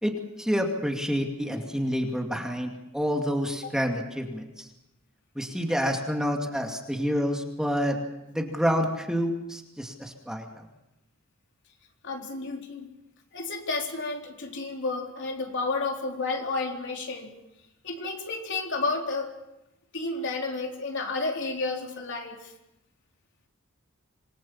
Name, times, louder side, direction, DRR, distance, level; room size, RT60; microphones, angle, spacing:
voice 1, 0.0-4.7 5.4-8.0 8.3-10.6, equal, 5° right, 2 dB, 2.3 m, -28 dB
voice 2, 12.0-12.9 13.3-17.3 17.8-19.4 19.9-22.5, left 3 dB, 60° left, 2 dB, 3.8 m, -31 dB
26.5 x 20.0 x 7.2 m, 0.92 s
head